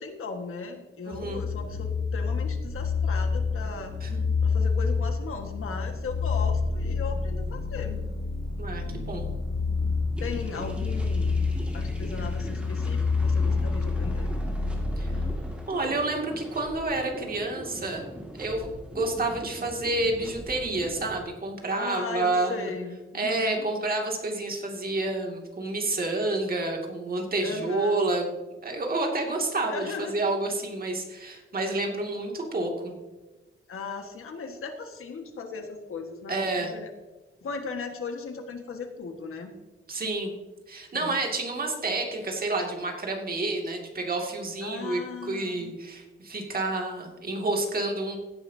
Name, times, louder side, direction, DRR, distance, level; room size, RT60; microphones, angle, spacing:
voice 1, 0.0-3.9 4.4-8.0 8.9-9.1 10.2-14.3 19.2-19.4 21.7-23.7 27.4-28.0 29.7-30.1 33.7-36.9 37.4-39.5 40.9-41.1 44.6-45.7, left 4 dB, 90° left, 4 dB, 1.6 m, -37 dB
sound 1, 1.1-15.3, left 4 dB, 50° left, 1.5 m, -28 dB
voice 2, 1.1-1.4 4.0-4.3 8.6-9.3 15.0-15.3 15.7-18.1 18.4-22.7 23.1-28.3 28.6-33.0 36.3-36.7 39.9-40.3 40.7-48.2, right 2 dB, 45° right, 1 dB, 2.3 m, -29 dB
sound 2, 10.1-21.2, equal, 5° right, 2.1 m, -42 dB
16.5 x 9.7 x 2.8 m, 1.2 s
wide cardioid pair, 135°, 21 cm